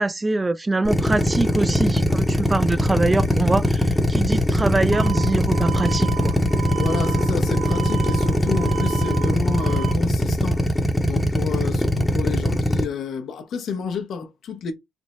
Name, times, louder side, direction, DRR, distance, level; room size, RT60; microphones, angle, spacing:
voice 1, 0.0-6.3, right 2 dB, 20° right, 0.3 m, -24 dB
Drill, 0.8-12.8, left 1 dB, 5° left, 0.7 m, -20 dB
sound 1, 4.9-9.9, right 15 dB, 55° right, 1.4 m, -34 dB
voice 2, 6.8-10.6 11.0-14.7, left 5 dB, 70° left, 0.7 m, -30 dB
3.4 x 2.0 x 4.1 m
cardioid pair, 90°, 0 cm